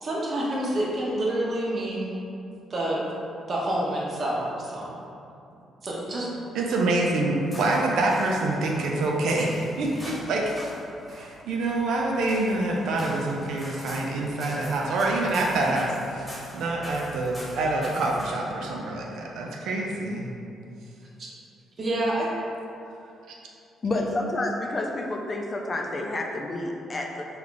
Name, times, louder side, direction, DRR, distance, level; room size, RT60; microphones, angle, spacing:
voice 1, 0.0-2.2 2.7-3.0 3.5-4.9 5.8-6.3 21.8-22.3, right 1 dB, 45° right, -4 dB, 0.8 m, -28 dB
voice 2, 6.5-10.4 11.1-16.3 16.5-20.3 23.3-23.4, right 2 dB, 80° right, -1 dB, 0.4 m, -26 dB
sound 1, 7.4-18.5, equal, 5° left, 1.1 m, -43 dB
voice 3, 23.8-27.3, left 2 dB, 35° left, 1 dB, 0.4 m, -29 dB
3.1 x 2.3 x 3.8 m, 2.6 s
cardioid pair, 90°, 0 cm